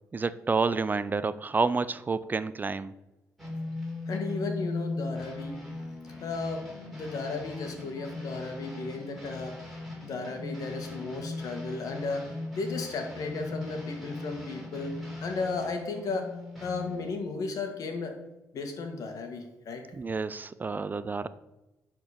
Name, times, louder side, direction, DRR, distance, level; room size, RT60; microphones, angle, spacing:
voice 1, 0.1-2.9 19.9-21.3, right 4 dB, 30° right, 14 dB, 0.5 m, -29 dB
sound 1, 3.4-17.2, left 2 dB, ahead, 3.6 m, -39 dB
voice 2, 4.1-5.6 6.2-6.7 6.9-9.6 10.0-14.9 15.2-16.3 16.6-18.2 18.5-19.9, left 4 dB, 65° left, 5 dB, 1.9 m, -34 dB
10.5 x 4.4 x 6.7 m, 1.0 s
cardioid pair, 90°, 6 cm